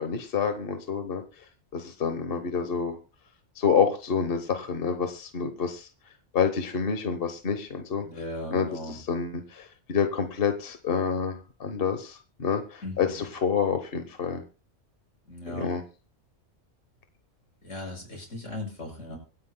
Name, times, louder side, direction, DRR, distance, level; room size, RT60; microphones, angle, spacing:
voice 1, 0.0-1.4 1.7-3.0 3.5-5.9 6.3-8.1 8.5-14.4 15.5-15.8, left 6 dB, 50° left, 7 dB, 1.2 m, -28 dB
voice 2, 8.0-9.0 12.8-13.3 15.3-15.7 17.6-19.2, left 1 dB, 75° left, 0 dB, 6.5 m, -37 dB
25.5 x 9.6 x 2.2 m, 0.33 s
omnidirectional pair, 1.3 m